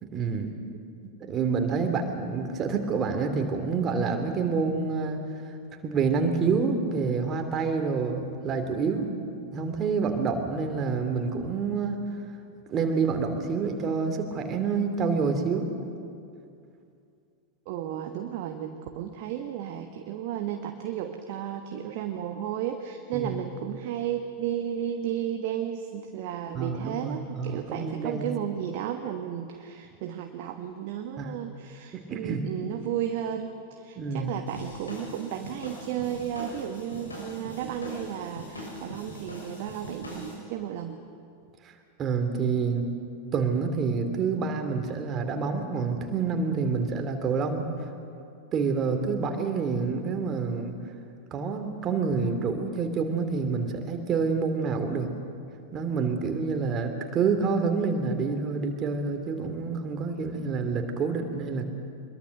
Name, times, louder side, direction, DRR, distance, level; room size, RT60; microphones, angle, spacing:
voice 1, 0.0-0.5 1.2-5.2 5.8-9.1 9.5-12.0 12.7-15.7 23.1-23.4 26.5-28.3 31.2-31.3 31.9-32.5 33.9-34.3 41.6-42.9 43.3-47.9 48.5-50.8 51.3-55.1 55.7-61.7, right 5 dB, 30° right, 5 dB, 2.8 m, -28 dB
voice 2, 17.7-41.0, right 10 dB, 45° right, 5 dB, 1.3 m, -33 dB
sound 1, 34.5-40.3, equal, 75° left, 6.5 m, -41 dB
24.0 x 22.0 x 6.6 m, 2.5 s
figure-of-eight pair, 90°, 0 cm